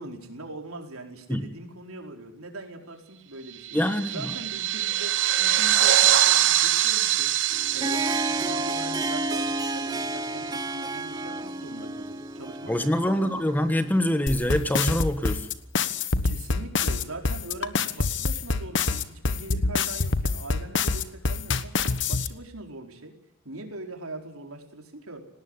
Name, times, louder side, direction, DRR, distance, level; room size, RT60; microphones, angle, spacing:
voice 1, 0.0-3.8 4.1-7.3 7.7-13.5 16.2-23.1 23.4-25.2, right 2 dB, 85° right, 3 dB, 4.6 m, -41 dB
sound 1, 3.6-10.5, right 12 dB, 60° right, 1.0 m, -24 dB
voice 2, 3.7-4.3 12.7-15.5, equal, 10° left, 9 dB, 1.4 m, -25 dB
Harp, 7.5-15.3, right 2 dB, 20° right, 0.8 m, -32 dB
sound 2, 14.3-22.3, left 4 dB, 55° left, 1.3 m, -25 dB
19.0 x 19.0 x 9.9 m, 0.79 s
head